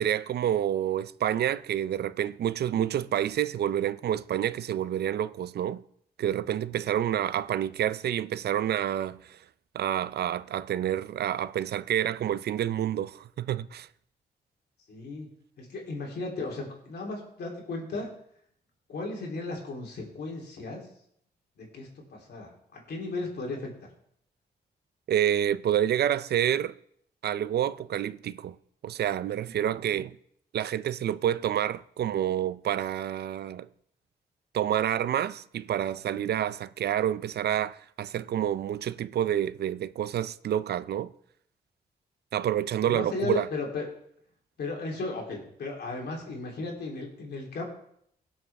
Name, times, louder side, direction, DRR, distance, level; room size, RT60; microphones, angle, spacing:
voice 1, 0.0-5.8 6.2-9.4 9.7-13.9 25.1-26.7 27.2-28.6 28.8-30.1 30.5-33.7 34.5-41.1 42.3-43.5, right 10 dB, 70° right, 0.5 m, -28 dB
voice 2, 14.9-15.3 15.6-18.1 18.9-20.8 21.6-23.7 42.8-43.8 44.6-47.6, left 3 dB, 75° left, 3.2 m, -35 dB
17.0 x 7.3 x 3.4 m
cardioid pair, 60°, 17 cm